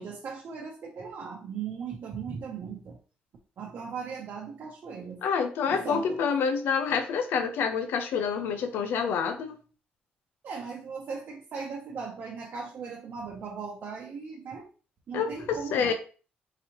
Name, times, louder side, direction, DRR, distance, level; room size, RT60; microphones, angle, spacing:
voice 1, 0.0-3.0 3.6-5.2 5.7-6.2 10.4-14.7 15.1-15.9, right 5 dB, 65° right, -1 dB, 0.8 m, -38 dB
voice 2, 5.2-9.6 15.1-15.9, left 6 dB, 85° left, 7 dB, 0.5 m, -27 dB
4.0 x 2.8 x 3.0 m, 0.37 s
cardioid pair, 90°, 4 cm